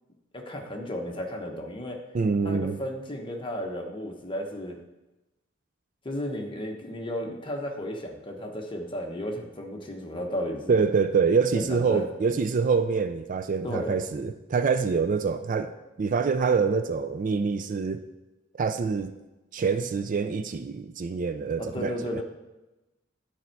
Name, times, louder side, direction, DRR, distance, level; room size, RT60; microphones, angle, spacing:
voice 1, 0.3-2.0 2.4-4.8 6.0-10.8 11.5-12.1 13.6-14.0 21.6-22.2, equal, 25° left, 2 dB, 1.0 m, -34 dB
voice 2, 2.1-2.8 10.7-15.7 16.0-18.0 18.6-19.1 19.5-22.2, right 5 dB, 40° right, 10 dB, 0.3 m, -25 dB
10.5 x 4.4 x 4.5 m, 1.0 s
head